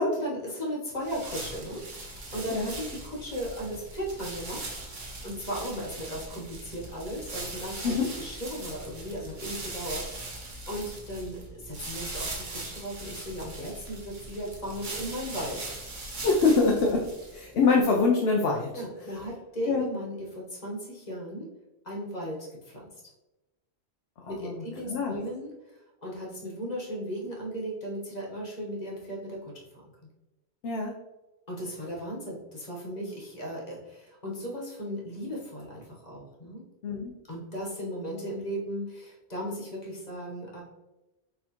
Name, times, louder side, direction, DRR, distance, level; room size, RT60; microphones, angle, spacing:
voice 1, 0.2-4.9 5.2-10.4 10.7-15.7 18.7-21.5 21.8-22.8 24.3-29.6 31.5-36.6 37.3-40.6, equal, 40° left, -3 dB, 1.2 m, -36 dB
sound 1, 1.0-17.5, right 2 dB, 50° right, 0.9 m, -40 dB
voice 2, 16.2-17.1 17.3-18.7 19.7-19.9 24.2-25.2 30.6-30.9 36.8-37.1, left 4 dB, 70° left, 0 dB, 0.8 m, -24 dB
4.1 x 3.7 x 2.9 m, 1.0 s
omnidirectional pair, 1.1 m